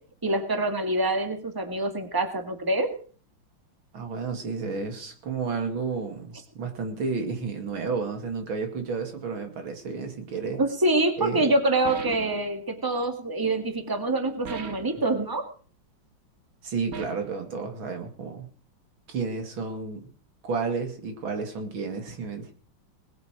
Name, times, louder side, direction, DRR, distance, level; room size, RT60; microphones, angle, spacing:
voice 1, 0.2-2.9 10.6-15.4, right 2 dB, 10° right, 6 dB, 1.9 m, -25 dB
voice 2, 3.9-10.6 11.2-11.5 16.6-18.5 19.1-20.1 20.4-22.5, right 4 dB, 85° right, 6 dB, 3.1 m, -31 dB
sound 1, 11.8-12.5 14.4-15.0 16.9-17.4, right 6 dB, 50° right, 1.7 m, -37 dB
20.0 x 8.3 x 6.2 m, 0.41 s
omnidirectional pair, 2.2 m